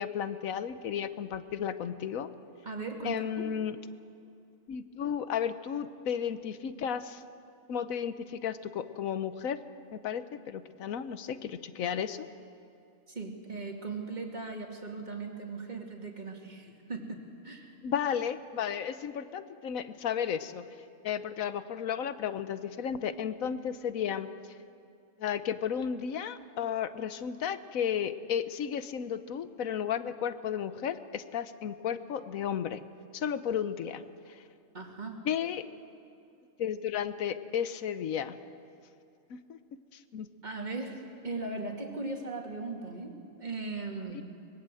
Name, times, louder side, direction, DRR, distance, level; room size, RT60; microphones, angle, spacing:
voice 1, 0.0-2.3 3.0-3.8 4.7-7.2 7.7-9.6 9.9-12.3 17.8-20.6 21.0-24.3 25.2-32.8 33.1-34.0 34.3-34.4 35.2-35.7 36.6-38.4 39.3-39.6 39.9-40.3 44.1-44.2, left 8 dB, 80° left, 12 dB, 1.3 m, -33 dB
voice 2, 2.6-3.3 13.1-17.7 34.7-35.2 40.4-44.2, right 3 dB, 30° right, 2 dB, 2.6 m, -38 dB
24.5 x 21.0 x 7.8 m, 2.5 s
omnidirectional pair, 1.4 m